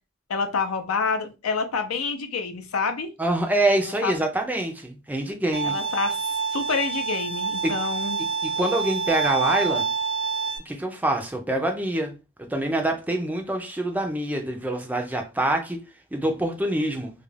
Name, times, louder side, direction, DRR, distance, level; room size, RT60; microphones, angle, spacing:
voice 1, 0.3-3.1 4.0-4.1 5.6-6.2 6.5-8.2, left 4 dB, 90° left, 0.5 m, -27 dB
voice 2, 3.2-5.8 7.6-7.8 8.4-9.9 10.7-12.1 12.4-15.8 16.1-17.1, right 1 dB, 10° right, 0.4 m, -25 dB
Bowed string instrument, 5.5-10.6, right 5 dB, 80° right, 0.6 m, -27 dB
2.4 x 2.1 x 3.2 m
head